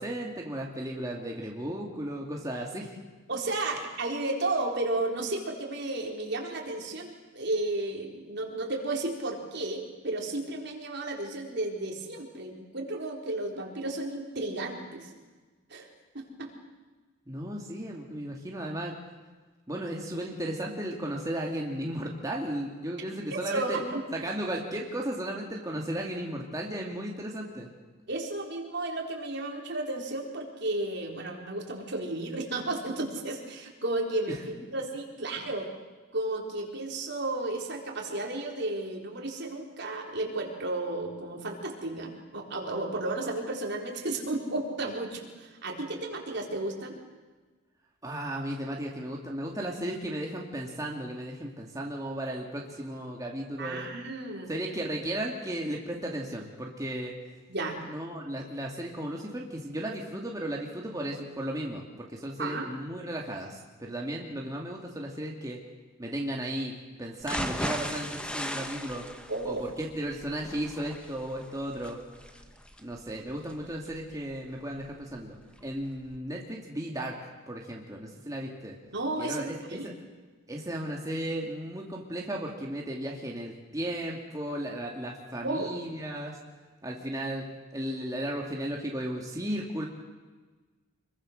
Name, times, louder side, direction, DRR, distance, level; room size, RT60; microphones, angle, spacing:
voice 1, 0.0-3.0 17.3-18.9 19.7-27.7 34.3-34.4 35.4-35.5 48.0-53.9 54.5-57.1 57.9-65.6 66.0-69.1 69.4-72.0 72.8-78.8 79.2-79.9 80.5-86.4 86.8-87.5 87.7-89.9, right 1 dB, 20° right, -1 dB, 2.5 m, -35 dB
voice 2, 3.3-15.1 15.7-15.9 16.1-16.6 23.3-24.0 28.1-35.7 36.1-47.0 53.6-54.5 57.5-57.8 62.4-62.7 69.3-69.6 78.9-79.9 85.4-85.7, right 2 dB, 60° right, 0 dB, 4.3 m, -33 dB
sound 1, 67.2-75.2 75.6-75.7 76.1-76.2, equal, 5° left, 1.5 m, -38 dB
26.0 x 23.0 x 6.6 m, 1.3 s
head